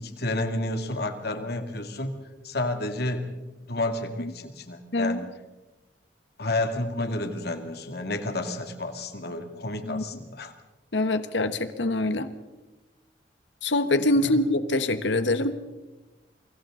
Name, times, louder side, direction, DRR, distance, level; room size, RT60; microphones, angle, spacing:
voice 1, 0.0-2.1 2.4-3.3 3.7-5.2 6.4-10.5 14.2-14.4, left 2 dB, 60° left, 6 dB, 2.2 m, -30 dB
voice 2, 10.9-12.3 13.6-15.6, left 2 dB, 80° left, 10 dB, 1.2 m, -24 dB
28.5 x 24.0 x 3.8 m, 1.1 s
head